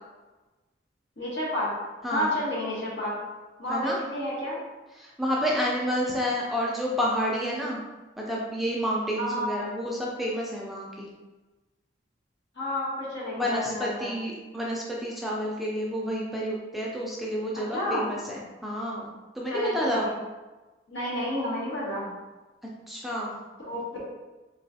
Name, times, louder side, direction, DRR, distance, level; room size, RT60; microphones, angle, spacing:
voice 1, 1.2-1.7 2.1-3.1 3.6-4.6 9.2-9.7 12.6-14.1 17.7-18.1 19.5-20.1 20.9-22.1 23.7-23.8, left 1 dB, 75° left, -6 dB, 1.3 m, -30 dB
voice 2, 2.0-2.3 3.7-4.0 5.0-7.8 8.2-11.1 13.3-19.1 19.3-20.1 22.9-23.4, equal, ahead, -4 dB, 0.4 m, -29 dB
3.7 x 3.0 x 2.7 m, 1.2 s
head